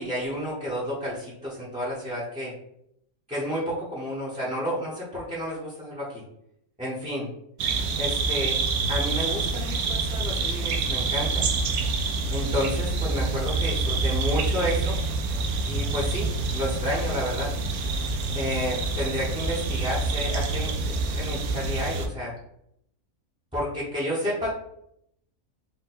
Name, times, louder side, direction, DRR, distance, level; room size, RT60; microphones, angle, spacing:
voice 1, 0.0-2.5 3.3-6.2 6.8-7.3 8.0-8.6 8.9-11.5 12.3-15.0 15.7-16.3 16.5-17.5 18.3-22.4 23.5-24.5, equal, 5° right, -9 dB, 0.7 m, -31 dB
sound 1, 7.6-22.1, right 3 dB, 85° right, 1.1 m, -27 dB
3.9 x 2.2 x 4.3 m, 0.74 s
omnidirectional pair, 1.5 m